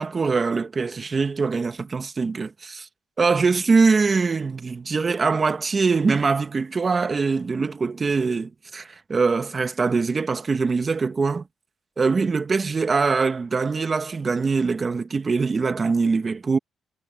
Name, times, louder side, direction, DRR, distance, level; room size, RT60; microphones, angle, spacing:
voice 1, 0.0-2.9 3.2-11.4 12.0-16.6, right 4 dB, 35° right, 1.6 m, -23 dB
cardioid pair, 90°, 0 cm